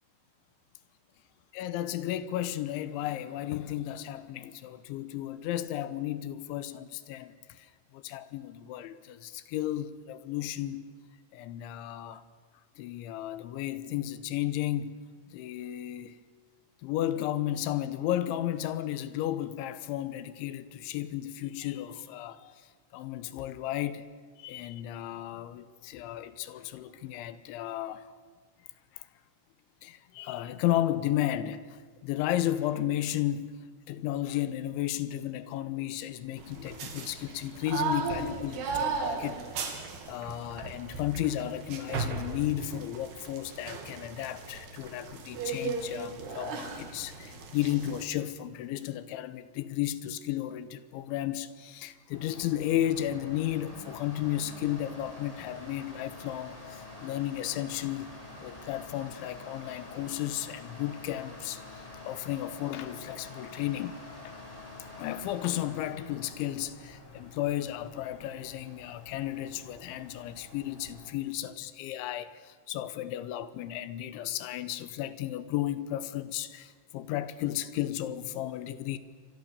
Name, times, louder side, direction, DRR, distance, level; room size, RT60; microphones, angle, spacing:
voice 1, 1.5-7.7 7.9-10.9 11.3-12.2 12.8-15.0 15.3-16.1 16.8-22.6 22.9-24.0 24.4-28.1 28.9-29.1 29.8-31.8 32.0-33.5 33.9-58.1 58.4-64.0 65.0-79.0, left 13 dB, 75° left, 3.2 m, -33 dB
sound 1, 36.4-48.0, right 4 dB, 55° right, 4.3 m, -36 dB
sound 2, 52.1-71.1, left 2 dB, 10° left, 3.4 m, -47 dB
28.0 x 25.5 x 6.9 m
omnidirectional pair, 5.9 m